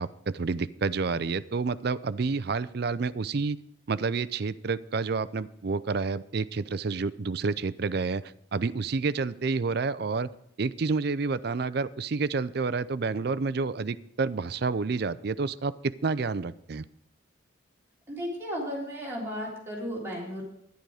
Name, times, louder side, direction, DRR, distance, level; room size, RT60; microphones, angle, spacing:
voice 1, 0.0-3.6 3.9-8.2 8.5-10.3 10.6-16.8, right 4 dB, 55° right, 15 dB, 0.5 m, -29 dB
voice 2, 18.1-20.4, equal, 10° right, -4 dB, 3.6 m, -34 dB
11.5 x 10.5 x 4.8 m, 0.76 s
head